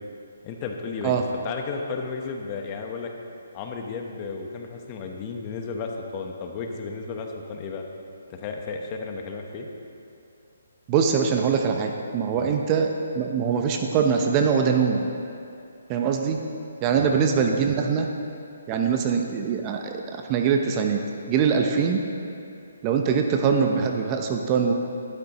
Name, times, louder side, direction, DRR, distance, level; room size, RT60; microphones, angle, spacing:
voice 1, 0.4-3.1 3.5-7.8 8.4-9.7 12.3-12.5 16.9-17.1, left 4 dB, 25° left, 2 dB, 1.0 m, -33 dB
voice 2, 10.9-15.1 15.9-16.4 16.8-18.1 18.7-21.0 21.3-22.0 22.8-24.7, right 6 dB, 25° right, 3 dB, 0.7 m, -23 dB
13.0 x 12.0 x 3.0 m, 2.6 s
hypercardioid pair, 155°, 0 cm